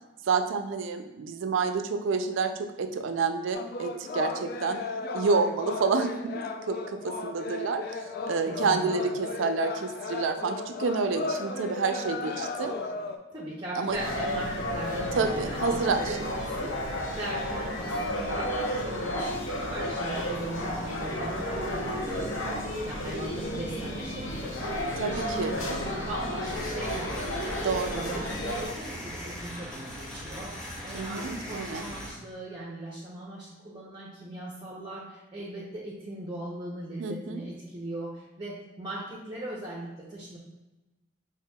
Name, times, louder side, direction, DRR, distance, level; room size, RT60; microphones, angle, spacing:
voice 1, 0.2-4.8 5.1-8.0 8.3-12.7 13.8-14.0 15.2-16.3 25.0-25.8 27.6-28.1 30.9-31.8 37.0-37.4, right 4 dB, 75° right, 8 dB, 0.4 m, -29 dB
sound 1, 3.5-13.2, left 3 dB, 50° left, 0.3 m, -35 dB
voice 2, 8.4-9.1 13.3-22.5 22.8-27.7 27.9-40.4, right 1 dB, 25° right, -4 dB, 0.6 m, -39 dB
sound 2, 13.9-28.7, equal, 80° left, 0.8 m, -32 dB
sound 3, 26.4-32.1, equal, 5° left, 1.4 m, -40 dB
5.6 x 3.2 x 2.2 m, 1.0 s
head